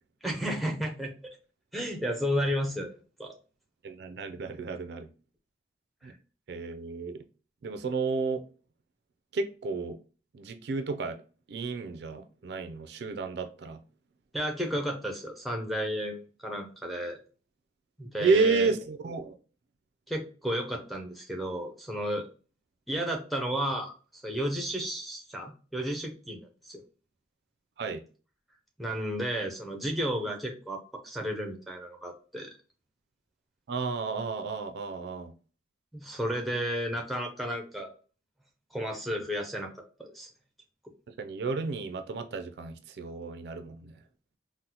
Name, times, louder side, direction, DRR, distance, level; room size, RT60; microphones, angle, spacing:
voice 1, 0.2-1.4 1.7-2.9 3.2-3.3 6.0-6.1 14.3-17.2 18.0-18.7 20.1-22.3 22.9-26.8 28.8-32.5 35.9-37.9 38.7-39.7 40.0-40.3, equal, ahead, 0.5 m, -33 dB
voice 2, 3.8-5.1 6.0-6.1 6.5-7.2 7.6-8.4 9.3-10.0 10.3-11.2 11.5-13.8 18.2-19.4 27.8-28.0 33.7-35.3 41.1-43.9, right 4 dB, 65° right, 0.3 m, -31 dB
3.8 x 2.0 x 2.8 m
head